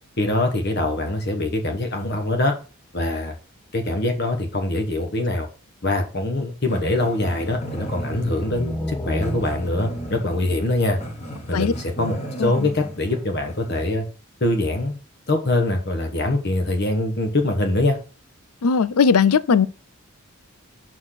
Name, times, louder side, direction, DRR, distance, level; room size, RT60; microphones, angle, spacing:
voice 1, 0.2-2.5 2.9-3.3 3.7-5.5 5.8-11.0 11.5-14.1 14.4-15.0 15.3-18.0, left 2 dB, 50° left, 1.3 m, -23 dB
Growling, 6.6-14.0, equal, 30° left, 1.8 m, -35 dB
sound 1, 7.7-12.0, left 1 dB, 10° left, 0.6 m, -33 dB
voice 2, 18.6-19.7, left 6 dB, 90° left, 0.5 m, -18 dB
5.8 x 4.6 x 6.3 m
head